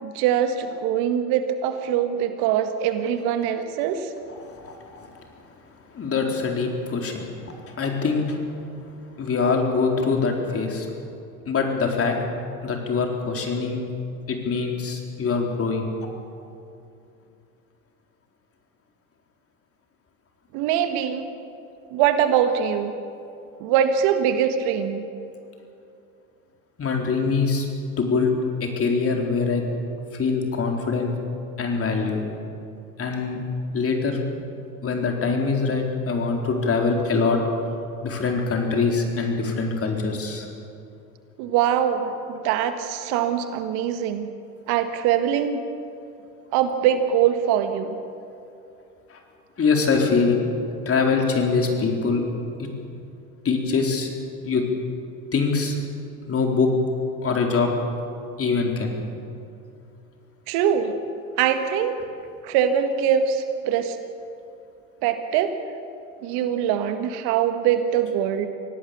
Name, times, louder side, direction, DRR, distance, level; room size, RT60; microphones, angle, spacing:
voice 1, 0.0-4.1 20.5-21.3 21.9-22.9 23.6-25.0 41.4-44.3 44.7-45.6 46.5-48.0 60.5-60.9 61.4-62.0 62.4-64.0 65.0-65.6 66.2-68.5, right 9 dB, 55° right, 8 dB, 1.8 m, -23 dB
voice 2, 4.6-5.0 5.9-7.3 7.8-8.4 9.2-10.9 11.5-12.2 12.6-13.8 14.3-15.9 26.8-27.7 28.0-28.3 28.6-29.6 30.2-31.1 31.6-32.2 33.0-33.4 33.7-34.2 34.8-37.4 38.0-40.4 49.1-49.2 49.6-50.4 50.9-52.2 52.6-52.7 53.4-54.1 54.4-54.6 55.3-55.8 56.3-56.7 57.2-57.7 58.4-58.9, left 4 dB, 30° left, 2 dB, 4.2 m, -23 dB
25.0 x 18.0 x 7.1 m, 2.6 s
hypercardioid pair, 80°, 44 cm